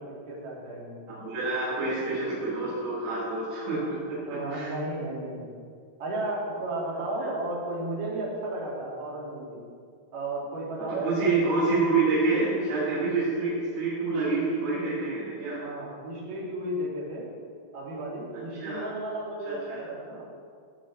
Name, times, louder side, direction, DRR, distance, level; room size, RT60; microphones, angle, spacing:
voice 1, 0.1-1.0 4.2-5.5 6.0-9.6 10.1-11.4 15.6-17.2 17.7-20.2, right 1 dB, 55° right, -6 dB, 4.7 m, -33 dB
voice 2, 1.1-4.2 4.5-4.7 7.2-7.3 10.9-15.6 18.6-18.9 19.4-19.8, right 3 dB, 75° right, -11 dB, 6.6 m, -27 dB
18.5 x 9.1 x 4.4 m, 2.2 s
omnidirectional pair, 5.6 m